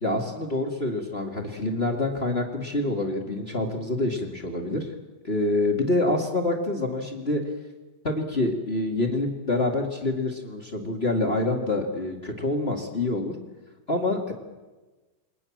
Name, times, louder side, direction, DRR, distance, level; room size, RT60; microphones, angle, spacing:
voice 1, 0.0-4.9 5.2-7.4 8.0-13.3 13.9-14.3, left 2 dB, 35° left, 3 dB, 0.9 m, -26 dB
28.5 x 23.0 x 7.4 m, 1.2 s
omnidirectional pair, 5.5 m